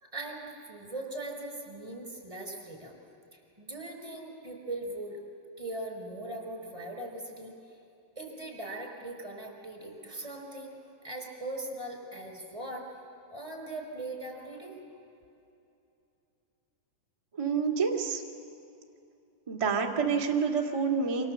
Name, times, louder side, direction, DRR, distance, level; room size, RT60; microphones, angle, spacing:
voice 1, 0.0-3.0 3.3-5.2 5.6-7.5 8.1-12.9 13.3-14.7, right 2 dB, 10° right, 3 dB, 4.5 m, -40 dB
voice 2, 17.3-18.2 19.5-21.3, right 5 dB, 40° right, -1 dB, 0.4 m, -28 dB
28.5 x 26.5 x 7.5 m, 2.8 s
omnidirectional pair, 4.9 m